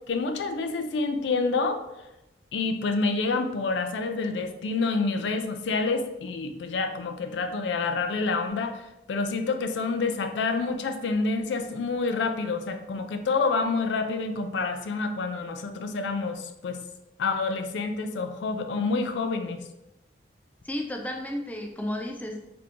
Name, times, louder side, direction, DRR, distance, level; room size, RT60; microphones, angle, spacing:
voice 1, 0.1-1.8 2.5-8.8 9.1-16.8 17.2-19.6, left 4 dB, 80° left, 7 dB, 0.4 m, -28 dB
voice 2, 20.6-22.4, left 1 dB, 10° left, 2 dB, 0.3 m, -32 dB
3.5 x 2.9 x 2.5 m, 0.93 s
head